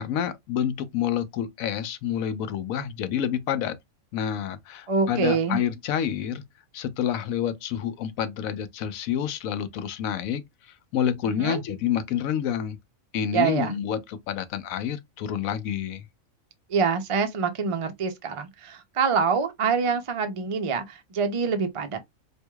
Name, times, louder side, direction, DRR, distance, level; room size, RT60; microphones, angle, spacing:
voice 1, 0.0-3.8 4.1-6.4 6.7-10.4 10.9-12.8 13.1-16.0, left 9 dB, 80° left, 1.0 m, -28 dB
voice 2, 4.9-5.6 11.4-11.6 13.3-13.7 16.7-22.0, right 5 dB, 45° right, 0.4 m, -25 dB
4.6 x 2.6 x 2.2 m
omnidirectional pair, 1.4 m